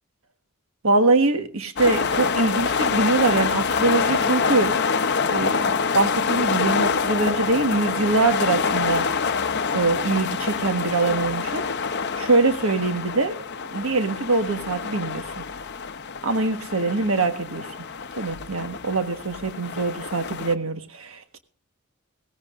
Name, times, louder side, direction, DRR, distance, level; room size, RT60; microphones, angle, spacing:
voice 1, 0.8-4.7 5.3-9.1 9.7-11.6 12.2-13.4 13.7-15.2 16.2-17.7 18.1-21.4, right 3 dB, 70° right, 1.4 m, -23 dB
sound 1, 1.8-20.5, left 5 dB, 55° left, 0.7 m, -26 dB
17.5 x 15.5 x 2.5 m
head